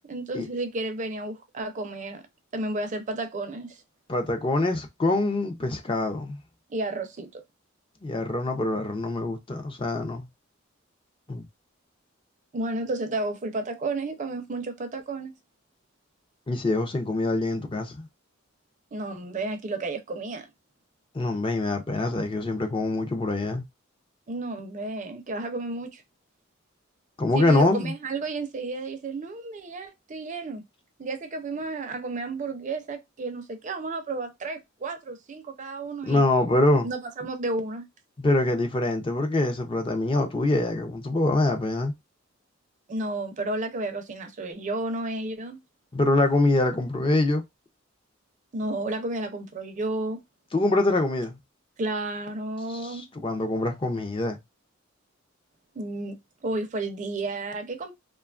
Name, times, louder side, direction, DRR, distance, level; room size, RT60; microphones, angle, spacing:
voice 1, 0.1-2.2 2.5-3.8 6.7-7.4 12.5-15.3 18.9-20.5 24.3-26.0 27.3-30.6 31.0-36.2 36.8-37.9 42.9-45.6 48.5-50.2 51.8-53.1 55.8-57.9, right 2 dB, 40° right, 0.5 m, -32 dB
voice 2, 4.1-6.4 8.0-10.3 11.3-11.4 16.5-18.1 21.1-23.6 27.2-27.9 36.1-36.9 38.2-41.9 45.9-47.4 50.5-51.4 52.7-54.4, left 2 dB, 25° left, 0.5 m, -24 dB
2.8 x 2.3 x 2.3 m
head